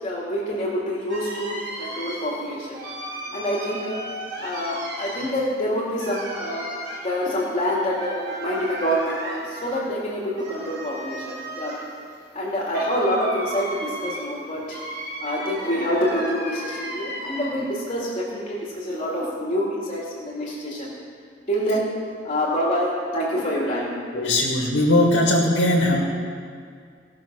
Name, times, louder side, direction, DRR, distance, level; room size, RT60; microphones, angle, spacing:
voice 1, 0.0-2.8 3.3-4.0 4.4-6.7 7.0-11.7 12.3-14.8 15.2-20.9 21.5-21.9 22.2-24.0, equal, 30° left, -6 dB, 2.3 m, -26 dB
sound 1, 1.1-17.8 18.1-19.3, right 1 dB, 70° right, 3.7 m, -35 dB
voice 2, 24.1-26.0, left 1 dB, 75° left, -1 dB, 1.7 m, -19 dB
17.5 x 6.1 x 6.2 m, 2.2 s
head